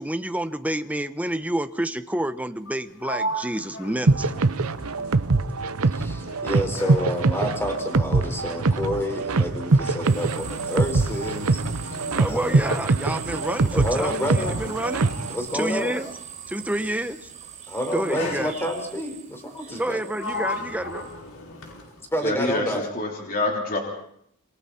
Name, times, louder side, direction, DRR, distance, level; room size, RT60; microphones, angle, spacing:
voice 1, 0.0-4.3 12.1-15.1 15.5-16.1 16.5-17.3 17.9-18.5 19.8-21.1, right 1 dB, 5° right, 10 dB, 0.9 m, -29 dB
Sliding door, 2.6-5.9 6.2-16.3 17.2-17.5 18.1-19.1 19.7-22.2, left 1 dB, 85° left, 5.6 m, -37 dB
sound 1, 4.1-15.3, right 3 dB, 75° right, 0.8 m, -23 dB
voice 2, 5.9-11.6 12.3-12.6 13.7-14.6 15.3-16.0 17.7-20.0 22.1-22.9, equal, 10° left, 4 dB, 4.5 m, -29 dB
sound 2, 10.0-21.1, right 7 dB, 35° right, 4.2 m, -41 dB
voice 3, 22.2-23.8, left 2 dB, 45° left, 0 dB, 3.7 m, -26 dB
28.0 x 23.0 x 4.3 m, 0.69 s
head